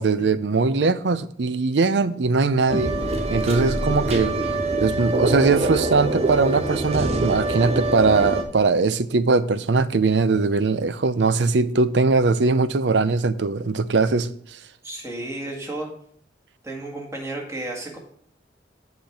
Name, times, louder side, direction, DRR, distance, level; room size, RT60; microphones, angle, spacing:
voice 1, 0.0-3.0 3.3-4.4 4.8-14.6, right 4 dB, 80° right, 0.6 m, -21 dB
sound 1, 2.7-8.4, right 2 dB, 35° right, 1.0 m, -24 dB
voice 2, 14.8-15.9 16.6-18.0, right 2 dB, 15° right, 1.9 m, -32 dB
7.9 x 5.2 x 5.9 m
head